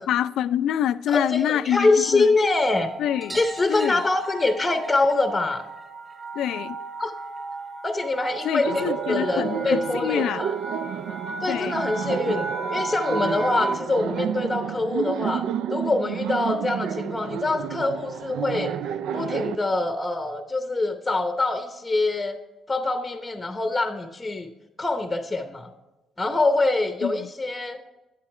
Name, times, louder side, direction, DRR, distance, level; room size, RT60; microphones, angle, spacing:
voice 1, 0.0-2.3 3.0-3.4 3.7-4.1 6.3-6.8 8.4-10.5 11.5-11.8 27.0-27.3, left 10 dB, 80° left, 0.3 m, -26 dB
voice 2, 1.1-2.9 3.3-5.6 7.0-7.1 7.8-10.5 11.4-15.4 15.7-18.7 19.1-22.4 22.7-24.5 24.8-25.7 26.2-27.8, left 2 dB, 15° left, 0.8 m, -24 dB
sound 1, 1.9-14.0, right 2 dB, 65° right, 2.5 m, -35 dB
sound 2, 3.2-8.3 8.6-9.7 11.1-11.2 11.4-11.5 11.8-11.9 13.2-13.3 13.6-13.7 14.0-14.1 15.3-15.4 16.2-16.3, right 2 dB, 15° right, 2.7 m, -44 dB
Laughter, 8.7-19.6, right 9 dB, 80° right, 0.3 m, -30 dB
8.8 x 8.2 x 3.2 m
cardioid pair, 90°, 0 cm